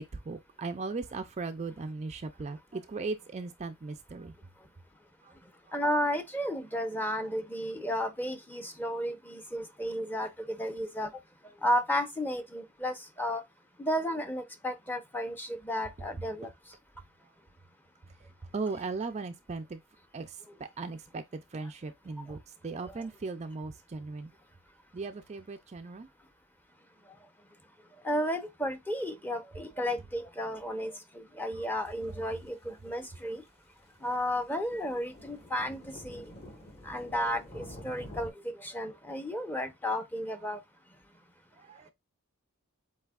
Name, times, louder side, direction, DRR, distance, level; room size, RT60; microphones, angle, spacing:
voice 1, 0.0-4.3 5.2-5.4 5.6-5.7 16.4-16.5 17.2-17.3 18.2-19.8 20.1-24.3 24.9-26.1 31.5-31.7 40.3-40.4 41.5-41.9, right 3 dB, 30° right, 0.4 m, -38 dB
voice 2, 5.7-11.1 11.6-13.4 13.8-16.5 22.3-22.4 28.0-33.4 34.0-36.2 36.8-40.6, equal, 10° left, 0.7 m, -33 dB
sound 1, 31.9-32.0 32.5-32.6 33.1-33.2 33.8-38.3, equal, 25° left, 1.2 m, -48 dB
7.9 x 2.8 x 2.4 m
head